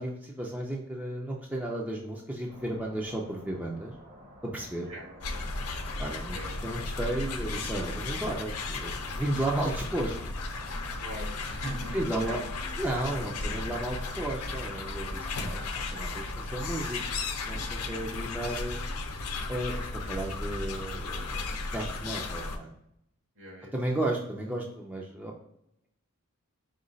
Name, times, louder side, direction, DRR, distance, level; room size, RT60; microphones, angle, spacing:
voice 1, 0.0-3.9 4.4-4.9 6.0-10.3 11.9-12.4 12.8-18.8 19.5-22.7 23.7-25.3, right 1 dB, 5° right, -2 dB, 0.5 m, -34 dB
sound 1, 2.5-16.3, right 1 dB, 40° right, 1.0 m, -53 dB
voice 2, 4.9-5.2 6.3-6.6 11.0-12.4 15.3-15.5 23.3-24.0, right 2 dB, 60° right, -1 dB, 1.5 m, -40 dB
sound 2, 5.2-22.6, left 3 dB, 90° left, 0.7 m, -35 dB
5.0 x 2.3 x 3.8 m, 0.78 s
head